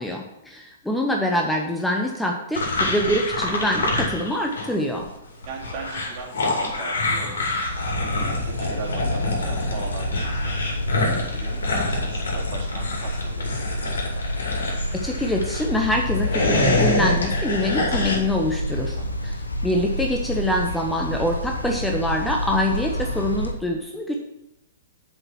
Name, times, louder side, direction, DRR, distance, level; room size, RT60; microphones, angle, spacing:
voice 1, 0.0-5.1 15.0-19.0 19.2-19.4 19.6-24.2, left 1 dB, 5° left, 1 dB, 0.8 m, -25 dB
sound 1, 2.5-4.7 5.0-15.7 16.1-18.2, left 2 dB, 70° left, 2.4 m, -26 dB
voice 2, 5.4-7.3 7.7-10.8 11.3-14.1 18.9-19.3, right 3 dB, 45° right, -2 dB, 2.4 m, -39 dB
sound 2, 7.6-23.5, left 1 dB, 85° left, 0.9 m, -28 dB
7.7 x 5.0 x 5.7 m, 0.87 s
figure-of-eight pair, 115°, 0 cm